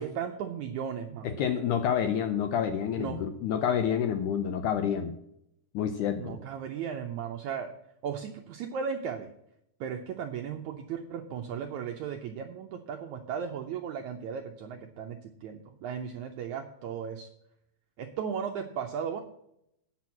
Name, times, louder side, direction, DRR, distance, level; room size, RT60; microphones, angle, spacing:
voice 1, 0.0-1.6 3.0-3.3 6.2-7.7 8.0-9.3 9.8-17.3 18.0-19.2, right 7 dB, 80° right, 4 dB, 1.7 m, -36 dB
voice 2, 1.2-5.1 5.7-6.4, left 8 dB, 80° left, 8 dB, 1.8 m, -28 dB
8.6 x 6.1 x 7.1 m, 0.77 s
omnidirectional pair, 4.2 m